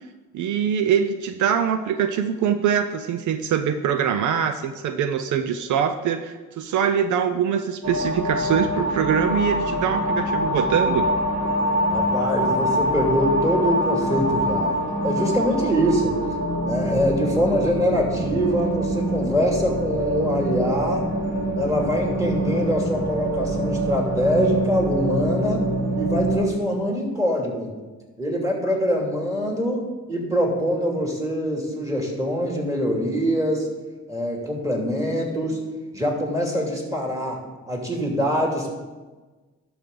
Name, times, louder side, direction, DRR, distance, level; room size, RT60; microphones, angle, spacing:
voice 1, 0.3-11.1, right 8 dB, 75° right, 9 dB, 0.6 m, -23 dB
sound 1, 7.8-26.4, right 1 dB, 55° right, 3.3 m, -24 dB
voice 2, 11.9-14.8 15.0-16.1 16.7-21.1 21.6-25.7 26.0-27.7 28.2-33.7 34.1-35.6 35.9-37.4 37.7-38.7, equal, 10° right, -1 dB, 2.6 m, -24 dB
12.0 x 6.1 x 3.9 m, 1.3 s
cardioid pair, 90°, 30 cm